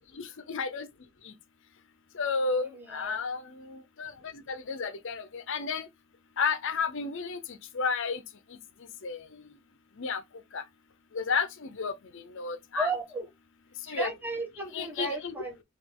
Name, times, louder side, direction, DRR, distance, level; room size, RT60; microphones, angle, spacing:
voice 1, 0.2-0.9 2.2-3.4 3.7-4.1 4.5-5.9 6.4-7.4 7.7-8.2 9.0-9.2 10.0-10.2 10.5-10.6 11.1-11.9 12.4-12.9 13.9-14.1 14.7-15.3, left 5 dB, 60° left, 0.6 m, -31 dB
voice 2, 2.6-3.2 12.7-13.3 13.9-15.6, right 2 dB, 10° right, 1.0 m, -34 dB
5.0 x 2.5 x 3.6 m
head